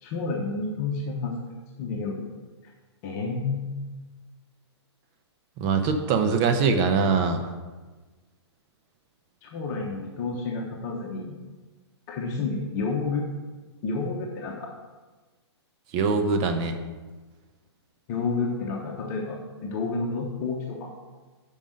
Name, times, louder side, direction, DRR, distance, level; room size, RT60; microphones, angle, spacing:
voice 1, 0.0-1.3 1.8-2.3 3.0-3.7 9.4-11.4 12.1-13.3 13.8-14.7 18.1-20.9, left 4 dB, 40° left, -1 dB, 1.0 m, -30 dB
voice 2, 5.6-7.5 15.9-16.8, right 5 dB, 30° right, 6 dB, 0.7 m, -23 dB
5.5 x 5.2 x 6.3 m, 1.3 s
hypercardioid pair, 140°, 15 cm